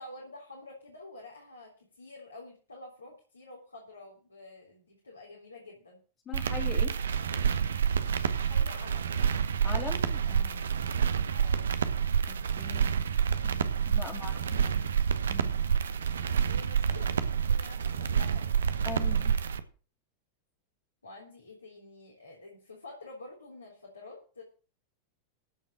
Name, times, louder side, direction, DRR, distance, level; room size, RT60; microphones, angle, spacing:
voice 1, 0.0-6.0 8.3-9.1 11.3-11.7 14.0-15.0 16.4-19.2 21.0-24.4, left 2 dB, 80° left, -2 dB, 3.4 m, -49 dB
voice 2, 6.3-7.0 9.6-10.6 12.3-12.9 13.4-14.8 15.3-15.6 18.9-19.4, left 6 dB, 25° left, -1 dB, 2.4 m, -41 dB
sound 1, 6.3-19.6, right 7 dB, 65° right, 1.0 m, -28 dB
15.0 x 5.5 x 7.4 m, 0.38 s
figure-of-eight pair, 90°, 0 cm